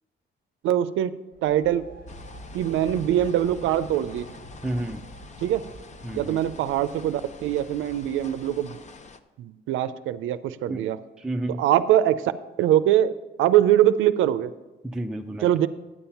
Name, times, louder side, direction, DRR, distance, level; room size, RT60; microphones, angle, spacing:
voice 1, 0.6-1.1 1.4-1.8 2.5-4.3 5.4-5.6 6.1-8.8 9.4-11.0 11.6-12.2 12.6-13.1 13.4-14.5 15.4-15.7, right 12 dB, 85° right, 13 dB, 0.5 m, -22 dB
sound 1, 1.3-9.1, right 1 dB, 55° left, 1.5 m, -47 dB
sound 2, 2.1-9.2, left 4 dB, 35° left, 0.6 m, -45 dB
voice 2, 4.6-5.0 6.0-6.4 10.7-10.9 11.2-11.6 14.8-15.5, right 1 dB, 5° right, 2 dB, 0.5 m, -31 dB
9.8 x 7.1 x 5.7 m, 1.1 s
cardioid pair, 90°, 20 cm